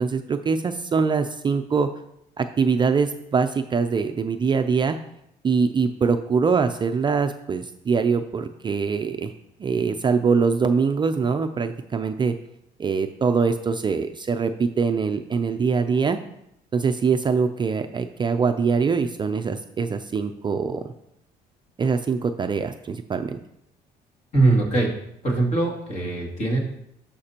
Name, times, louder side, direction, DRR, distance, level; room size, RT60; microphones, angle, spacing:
voice 1, 0.0-1.9 2.4-5.0 5.4-9.3 9.6-12.3 12.8-16.2 16.7-20.9 21.8-23.4, right 5 dB, 25° right, 7 dB, 0.4 m, -23 dB
voice 2, 24.3-24.9 25.2-26.6, right 2 dB, 45° left, -2 dB, 2.5 m, -21 dB
11.5 x 5.1 x 2.9 m, 0.77 s
cardioid pair, 110°, 17 cm